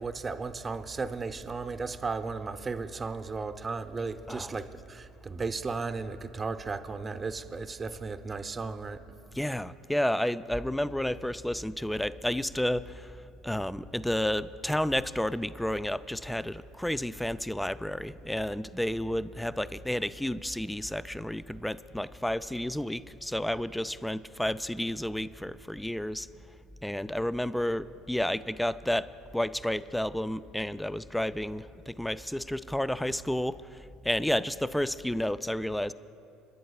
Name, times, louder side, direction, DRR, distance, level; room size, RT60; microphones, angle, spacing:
voice 1, 0.0-9.0, right 4 dB, 30° right, 9 dB, 0.7 m, -35 dB
voice 2, 4.3-4.6 9.3-26.3 26.8-35.9, left 1 dB, 5° left, 15 dB, 0.4 m, -31 dB
29.5 x 11.0 x 2.3 m, 2.7 s
hypercardioid pair, 70°, 0 cm